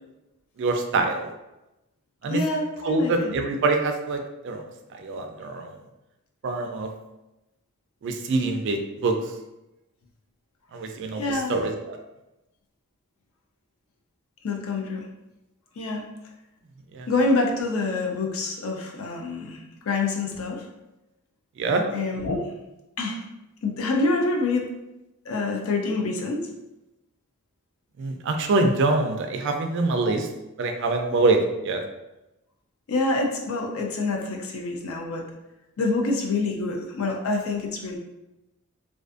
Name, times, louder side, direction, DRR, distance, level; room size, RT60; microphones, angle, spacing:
voice 1, 0.6-1.3 2.2-2.4 2.8-4.2 4.4-4.6 4.9-5.7 6.4-6.9 8.0-9.1 10.7-12.0 16.9-17.1 21.6-21.8 28.0-30.3 30.6-31.8, right 3 dB, 55° right, 4 dB, 0.3 m, -25 dB
voice 2, 2.3-3.3 11.2-11.6 14.4-15.1 15.8-16.1 17.1-20.7 21.9-22.5 23.0-23.2 23.6-24.7 25.3-26.5 32.9-35.2 35.8-38.0, left 3 dB, 65° left, 1 dB, 0.4 m, -26 dB
2.5 x 2.4 x 2.4 m, 0.96 s
head